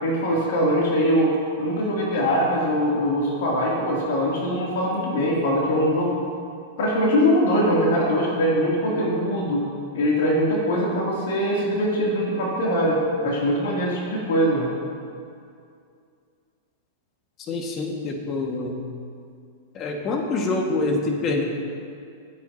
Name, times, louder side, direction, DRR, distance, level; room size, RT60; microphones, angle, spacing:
voice 1, 0.0-6.2 6.8-9.7 9.9-14.7, equal, 60° left, -4 dB, 3.1 m, -22 dB
voice 2, 17.5-18.8 19.7-21.4, left 3 dB, 35° left, 2 dB, 2.0 m, -26 dB
26.0 x 9.0 x 3.0 m, 2.4 s
figure-of-eight pair, 95°, 0 cm